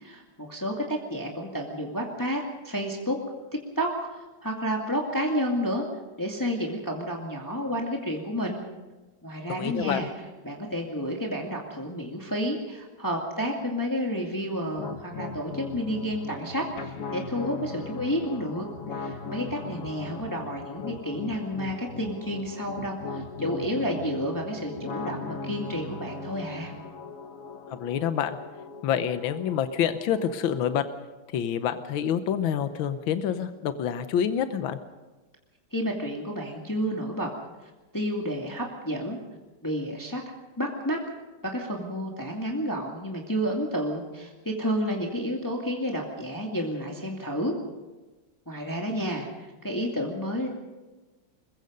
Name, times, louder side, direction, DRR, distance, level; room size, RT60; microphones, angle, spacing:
voice 1, 0.0-3.2 3.8-5.9 6.2-8.6 9.2-10.1 10.4-18.7 19.0-26.7 35.7-37.3 37.9-39.2 39.6-40.2 40.6-41.0 41.4-47.6 48.5-50.5, equal, 10° left, 0 dB, 2.2 m, -30 dB
voice 2, 9.5-10.1 27.7-28.4 28.8-30.9 31.3-34.8, left 9 dB, 75° left, 10 dB, 1.7 m, -27 dB
sound 1, 14.8-30.8, left 3 dB, 45° left, 1.5 m, -39 dB
23.0 x 21.5 x 5.3 m, 1.2 s
omnidirectional pair, 2.2 m